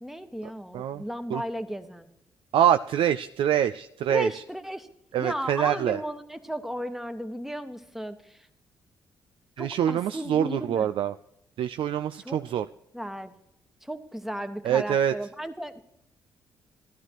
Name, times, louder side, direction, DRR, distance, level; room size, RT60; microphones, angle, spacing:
voice 1, 0.0-2.1 4.1-4.9 5.2-8.4 9.6-10.9 12.2-12.4 12.9-13.3 13.8-15.8, equal, 5° right, 9 dB, 1.2 m, -35 dB
voice 2, 2.5-4.4 5.1-6.0 9.6-11.1 11.6-12.7 14.6-15.1, right 10 dB, 60° right, 10 dB, 0.4 m, -25 dB
15.0 x 11.5 x 3.0 m, 0.77 s
hypercardioid pair, 45°, 10 cm